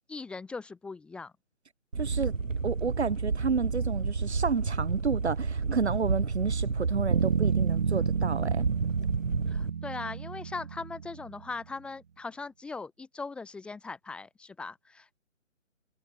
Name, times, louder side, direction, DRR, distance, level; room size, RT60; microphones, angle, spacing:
voice 1, 0.1-1.3 9.5-15.2, left 4 dB, 5° left, 1.5 m, -40 dB
sound 1, 1.9-9.7, right 4 dB, 75° right, 1.6 m, -30 dB
voice 2, 2.0-2.3 2.6-8.7, right 5 dB, 55° right, 1.6 m, -31 dB
Bass guitar, 7.1-11.5, right 7 dB, 35° right, 1.2 m, -32 dB
figure-of-eight pair, 150°, 39 cm